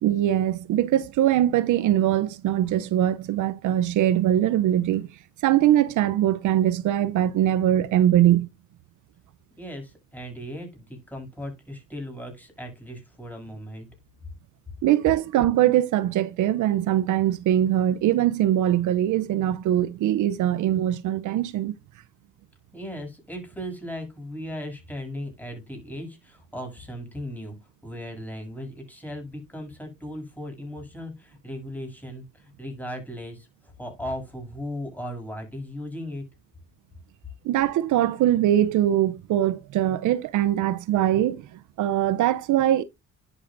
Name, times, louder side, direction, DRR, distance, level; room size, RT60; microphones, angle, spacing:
voice 1, 0.0-5.1 5.4-8.5 14.8-21.7 37.4-41.5 41.8-42.8, right 12 dB, 80° right, 0.6 m, -22 dB
voice 2, 9.6-13.9 22.7-36.2, equal, 5° left, 7.1 m, -37 dB
10.5 x 8.2 x 2.6 m
cardioid pair, 90°, 30 cm